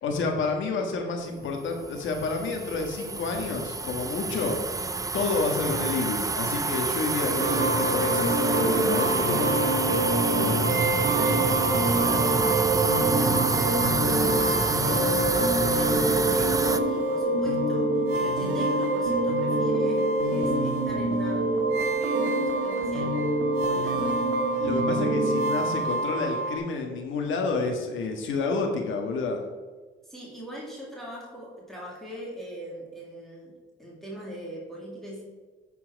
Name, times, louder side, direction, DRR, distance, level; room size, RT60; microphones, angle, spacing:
voice 1, 0.0-4.6 5.1-9.6 24.6-29.4, left 3 dB, 75° left, 3 dB, 1.5 m, -29 dB
sound 1, 1.6-16.8, right 3 dB, 15° right, 0.5 m, -27 dB
sound 2, 7.4-26.6, right 1 dB, 65° right, 1.6 m, -25 dB
voice 2, 10.2-11.5 11.8-12.4 13.0-23.2 23.6-24.5 30.0-35.2, right 1 dB, ahead, -5 dB, 2.3 m, -41 dB
10.5 x 4.6 x 4.7 m, 1.3 s
cardioid pair, 90°, 20 cm